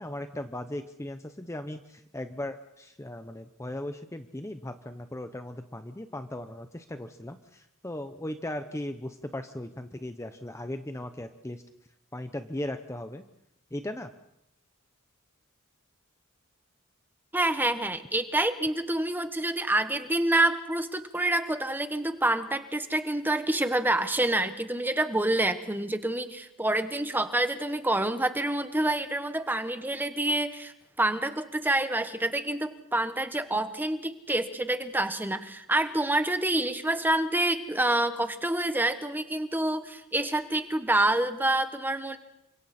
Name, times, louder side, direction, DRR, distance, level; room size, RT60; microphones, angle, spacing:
voice 1, 0.0-11.6 12.1-13.2 13.7-14.1, left 1 dB, 15° left, 8 dB, 0.8 m, -37 dB
voice 2, 17.3-42.2, right 1 dB, 10° right, 9 dB, 1.2 m, -27 dB
29.0 x 25.5 x 4.3 m, 0.81 s
head